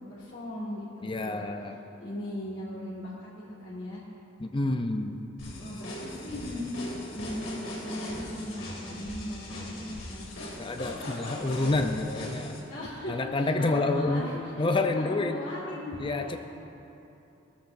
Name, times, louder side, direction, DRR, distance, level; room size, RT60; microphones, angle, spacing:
voice 1, 0.1-1.4 2.0-4.0 5.6-6.7 7.1-10.3 12.7-14.5 14.9-16.4, left 1 dB, 65° left, -6 dB, 1.9 m, -38 dB
voice 2, 1.0-1.8 4.4-5.2 10.6-12.6 13.1-15.4 16.0-16.4, left 2 dB, 25° left, 6 dB, 0.5 m, -28 dB
sound 1, 5.4-12.6, left 1 dB, 80° left, 2.6 m, -39 dB
18.0 x 13.5 x 2.6 m, 2.9 s
head